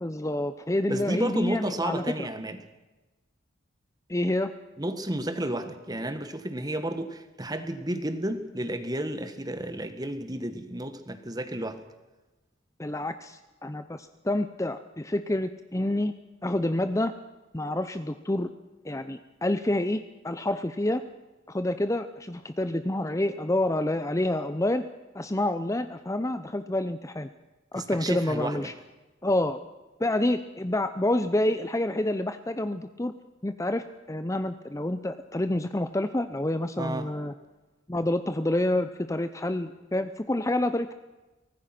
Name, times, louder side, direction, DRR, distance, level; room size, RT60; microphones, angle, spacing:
voice 1, 0.0-2.3 4.1-4.5 12.8-16.1 16.4-17.1 17.5-18.5 18.8-21.0 21.5-24.8 25.1-27.3 27.7-28.7 29.2-29.6 30.0-33.1 33.4-37.3 37.9-40.9, left 1 dB, 15° left, 11 dB, 0.7 m, -28 dB
voice 2, 0.9-2.6 4.8-11.8 27.7-28.7 36.8-37.1, right 1 dB, 20° right, 10 dB, 1.6 m, -32 dB
24.0 x 19.0 x 6.0 m, 1.1 s
head